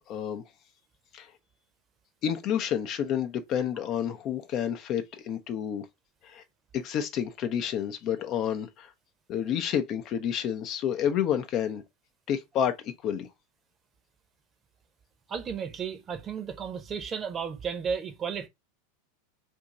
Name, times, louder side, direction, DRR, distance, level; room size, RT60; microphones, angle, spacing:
voice 1, 0.1-0.4 1.1-1.3 2.2-5.9 6.2-6.4 6.7-8.9 9.3-11.8 12.3-13.3, left 9 dB, 40° left, 0.6 m, -29 dB
voice 2, 15.3-18.5, right 6 dB, 30° right, 0.8 m, -33 dB
2.9 x 2.6 x 3.7 m
figure-of-eight pair, 85°, 0 cm